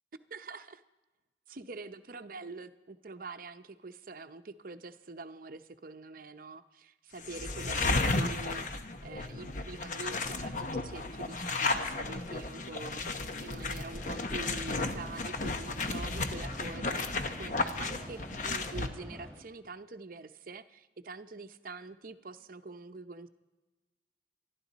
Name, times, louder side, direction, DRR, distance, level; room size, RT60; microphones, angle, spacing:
voice 1, 0.3-0.8 1.5-8.7 9.0-17.1 17.3-23.3, right 3 dB, 55° right, 10 dB, 0.7 m, -45 dB
sound 1, 7.2-18.9, left 3 dB, 45° left, 1.0 m, -34 dB
sound 2, 13.9-19.4, equal, 5° left, 3.9 m, -47 dB
26.0 x 11.5 x 4.1 m, 1.2 s
head